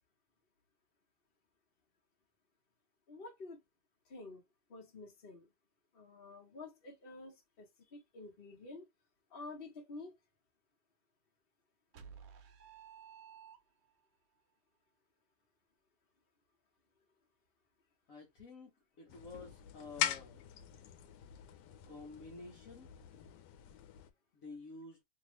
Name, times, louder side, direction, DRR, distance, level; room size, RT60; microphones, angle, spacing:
voice 1, 3.1-3.6 4.0-4.4 4.7-5.5 5.9-8.9 9.3-10.2, left 3 dB, 35° left, 1.3 m, -50 dB
sound 1, 11.9-14.0, right 7 dB, 65° right, 1.0 m, -54 dB
voice 2, 18.1-18.7 19.0-20.8 21.9-23.3 24.3-25.0, left 3 dB, 55° left, 1.2 m, -51 dB
sound 2, 19.1-24.1, left 10 dB, 90° left, 1.2 m, -42 dB
3.0 x 2.7 x 3.1 m
omnidirectional pair, 1.8 m